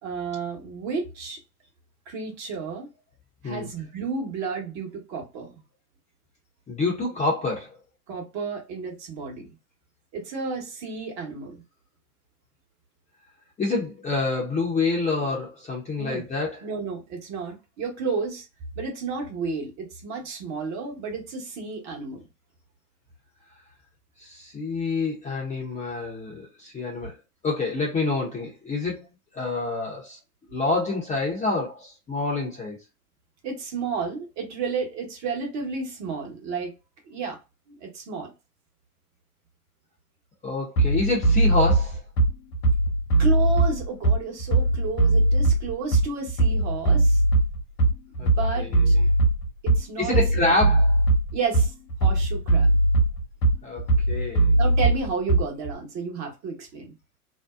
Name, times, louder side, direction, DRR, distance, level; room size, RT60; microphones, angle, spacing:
voice 1, 0.0-1.4 2.1-2.9 3.4-5.6 8.1-9.5 10.1-11.6 16.0-16.2 16.6-18.5 18.8-22.3 33.4-36.7 37.1-37.4 37.7-38.3 43.2-47.2 48.2-48.9 49.6-50.6 51.3-51.7 52.0-52.7 54.6-56.9, right 5 dB, 35° right, 1.2 m, -32 dB
voice 2, 6.7-7.8 13.6-16.6 24.2-27.1 27.4-29.0 29.3-30.2 30.5-32.8 40.4-42.0 48.2-48.3 48.6-49.1 50.0-51.0 53.6-54.5, left 3 dB, 15° left, 0.7 m, -27 dB
Bass drum, 40.8-55.7, right 2 dB, 80° left, 1.0 m, -21 dB
2.7 x 2.0 x 2.3 m
hypercardioid pair, 100°, 45 cm